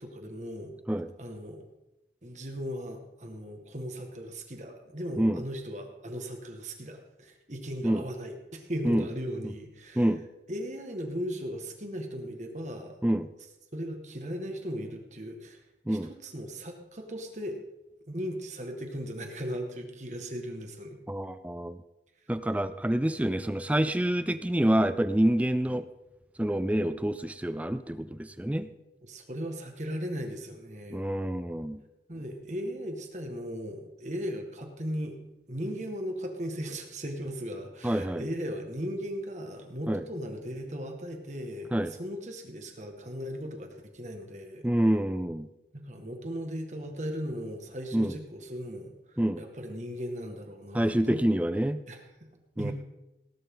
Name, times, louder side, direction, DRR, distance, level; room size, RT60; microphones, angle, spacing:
voice 1, 0.0-0.7 1.2-1.7 2.2-10.1 10.5-13.0 13.7-15.6 15.9-17.6 18.1-21.0 29.0-31.1 32.1-35.2 35.5-44.7 45.7-51.2 51.9-52.7, equal, 40° right, 4 dB, 2.0 m, -37 dB
voice 2, 21.1-21.8 22.3-25.8 26.4-28.7 30.9-31.8 37.8-38.2 39.9-40.0 41.7-41.9 44.6-45.5 47.9-48.1 49.2-49.4 50.7-51.8 52.6-52.7, right 1 dB, 10° right, 12 dB, 0.4 m, -27 dB
18.5 x 11.0 x 3.9 m, 0.94 s
head